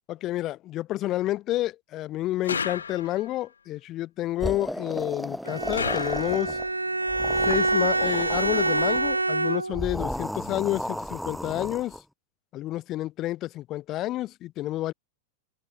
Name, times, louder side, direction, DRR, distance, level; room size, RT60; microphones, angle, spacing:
voice 1, 0.1-6.6 7.4-12.0 12.5-14.9, left 15 dB, 35° left, 5.6 m, -29 dB
sound 1, 2.4-3.4 5.7-6.7, left 6 dB, 80° left, 3.0 m, -32 dB
sound 2, 4.4-6.7 7.0-9.1 9.7-12.0, equal, ahead, 2.8 m, -34 dB
Bowed string instrument, 5.4-9.9, right 2 dB, 90° right, 1.4 m, -26 dB
open air
figure-of-eight pair, 95°, 0 cm